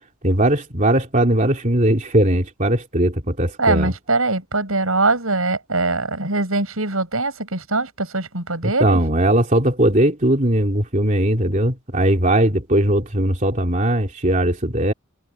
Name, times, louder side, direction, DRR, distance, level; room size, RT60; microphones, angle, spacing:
voice 1, 0.2-3.9 8.6-14.9, right 1 dB, 35° right, 3.1 m, -19 dB
voice 2, 3.6-9.0, right 3 dB, 80° right, 7.3 m, -22 dB
head